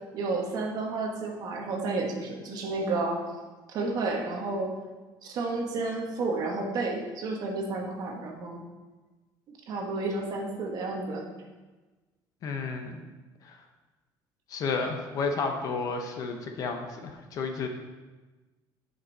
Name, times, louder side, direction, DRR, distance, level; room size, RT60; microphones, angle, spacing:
voice 1, 0.1-3.2 3.7-4.7 5.2-8.6 9.7-11.3, right 3 dB, 45° right, 1 dB, 1.2 m, -31 dB
voice 2, 12.4-13.1 13.4-13.6 14.5-17.7, left 4 dB, 40° left, 4 dB, 0.8 m, -32 dB
9.4 x 5.3 x 4.0 m, 1.2 s
cardioid pair, 170°, 9 cm